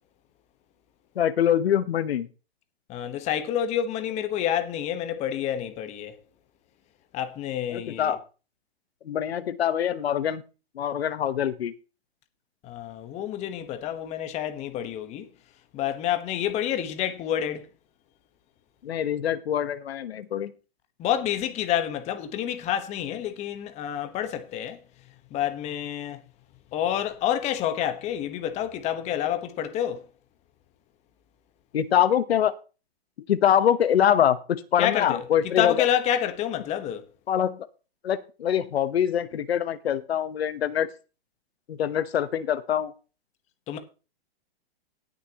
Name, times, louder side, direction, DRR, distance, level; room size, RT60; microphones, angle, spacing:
voice 1, 1.2-2.3 7.7-8.2 9.0-10.4 10.7-11.7 18.8-20.5 31.7-32.5 33.3-34.4 34.7-35.8 37.3-37.7 38.0-40.9 41.7-42.9, left 9 dB, 75° left, 1.1 m, -24 dB
voice 2, 2.9-6.2 7.1-8.2 12.6-15.3 15.7-17.7 21.0-24.8 25.3-26.2 26.7-30.1 34.8-35.3 35.6-37.1 43.7-43.8, left 10 dB, 20° left, 1.2 m, -28 dB
18.5 x 6.9 x 2.9 m
hypercardioid pair, 150°, 31 cm